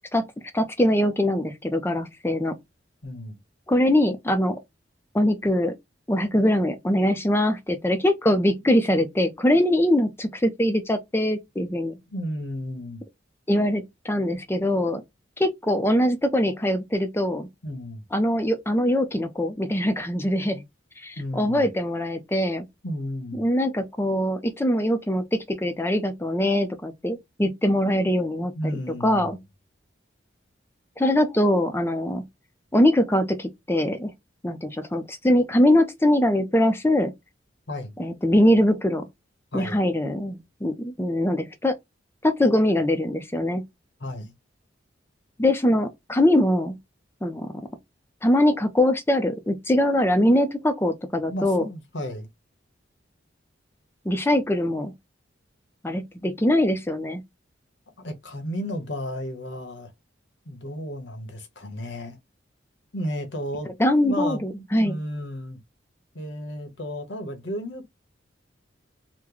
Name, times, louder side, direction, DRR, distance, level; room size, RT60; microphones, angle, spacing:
voice 1, 0.5-2.5 3.7-4.6 5.1-5.7 6.1-11.9 13.5-15.0 15.4-17.5 18.1-20.6 21.0-22.7 23.4-28.5 29.0-29.4 31.0-32.2 32.7-34.1 34.4-37.1 38.0-39.0 39.5-41.7 42.2-43.6 45.4-46.8 47.2-47.7 48.2-51.7 54.1-54.9 55.8-57.2 63.8-65.0, left 1 dB, 15° left, 0.5 m, -22 dB
voice 2, 3.0-3.4 12.1-13.0 17.6-18.1 21.2-21.7 22.8-23.5 28.4-29.4 37.7-38.0 39.5-39.8 44.0-44.3 51.3-52.3 58.0-59.9 60.4-62.2 62.9-63.7 64.0-65.6 66.1-67.9, equal, 70° left, 1.0 m, -33 dB
3.0 x 2.1 x 3.8 m
head